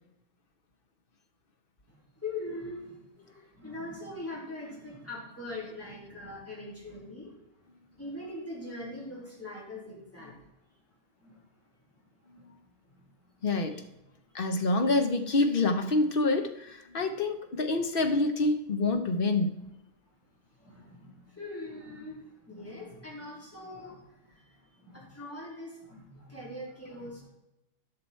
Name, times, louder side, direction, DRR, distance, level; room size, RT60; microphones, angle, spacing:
voice 1, 1.9-3.0 3.2-7.3 8.0-10.4 11.2-11.4 12.4-12.6 13.4-13.9 14.4-14.9 17.7-18.1 20.6-24.0 24.3-24.4 24.8-27.3, left 2 dB, 10° left, -6 dB, 3.5 m, -42 dB
voice 2, 13.4-13.8 14.3-19.6, left 2 dB, 50° left, 6 dB, 1.1 m, -27 dB
11.5 x 6.1 x 4.4 m, 0.89 s
omnidirectional pair, 1.2 m